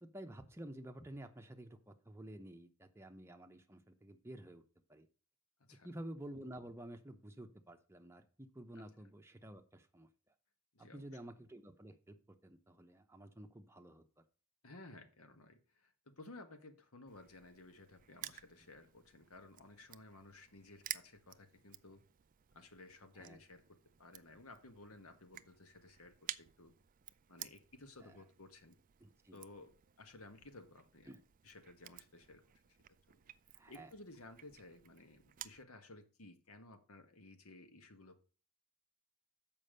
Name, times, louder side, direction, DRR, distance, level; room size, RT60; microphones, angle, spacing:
voice 1, 0.0-4.6 4.9-5.1 5.8-10.1 10.8-12.2 12.4-14.0 23.2-23.4 28.0-28.2 29.0-29.4 31.1-31.2 33.6-33.9, right 1 dB, 10° right, 5 dB, 0.8 m, -51 dB
voice 2, 14.6-22.0 22.5-23.6 24.0-26.7 27.3-28.8 29.3-31.1 31.4-32.4 33.1-33.2 33.7-38.2, left 2 dB, 75° left, 7 dB, 1.5 m, -56 dB
Crushing, 17.1-35.6, right 12 dB, 40° right, 0.4 m, -53 dB
7.1 x 5.4 x 6.5 m, 0.38 s
head